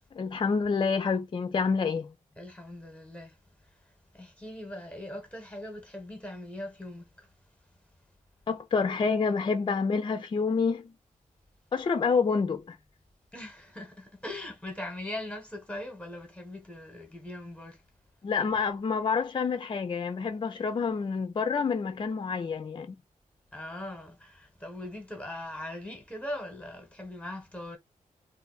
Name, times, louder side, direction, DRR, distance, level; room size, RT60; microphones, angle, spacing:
voice 1, 0.1-2.1 8.5-10.9 11.7-12.8 18.2-23.0, left 5 dB, 35° left, 0.4 m, -28 dB
voice 2, 2.4-3.3 4.2-7.3 13.3-17.8 23.5-27.8, left 1 dB, 10° left, 1.0 m, -40 dB
2.5 x 2.5 x 3.9 m
cardioid pair, 80°, 14 cm